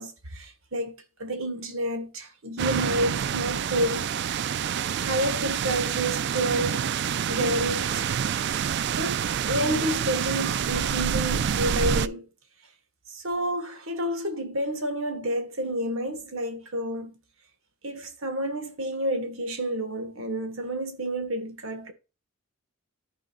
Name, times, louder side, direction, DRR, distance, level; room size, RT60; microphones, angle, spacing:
voice 1, 0.0-4.1 5.0-6.9 7.3-8.1 9.0-12.3 13.1-17.1 17.8-21.9, right 1 dB, 70° right, 1.7 m, -29 dB
sound 1, 2.6-12.1, right 8 dB, 50° right, 0.3 m, -27 dB
13.5 x 5.1 x 2.4 m
head